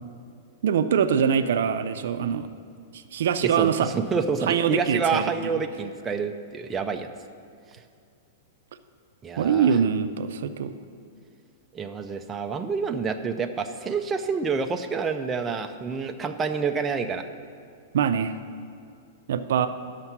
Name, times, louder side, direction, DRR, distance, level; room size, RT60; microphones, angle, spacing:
voice 1, 0.6-2.5 2.9-3.9 4.5-5.3 9.4-10.7 17.9-18.3 19.3-19.7, right 7 dB, 75° right, 11 dB, 0.5 m, -23 dB
voice 2, 3.4-7.1 9.2-9.8 11.7-17.2, right 5 dB, 15° right, 4 dB, 0.5 m, -28 dB
11.0 x 6.7 x 5.9 m, 2.3 s
hypercardioid pair, 145°, 0 cm